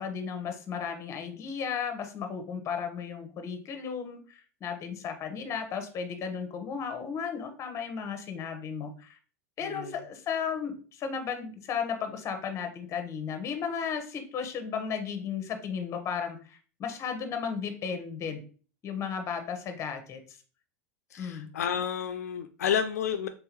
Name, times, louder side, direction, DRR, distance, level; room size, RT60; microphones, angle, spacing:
voice 1, 0.0-9.2 9.6-18.4 18.8-20.4 21.2-21.5, left 6 dB, 35° left, 7 dB, 0.9 m, -34 dB
voice 2, 9.6-10.0 21.1-23.3, left 8 dB, 85° left, 7 dB, 0.4 m, -30 dB
3.6 x 3.5 x 3.0 m, 0.39 s
hypercardioid pair, 95°, 8 cm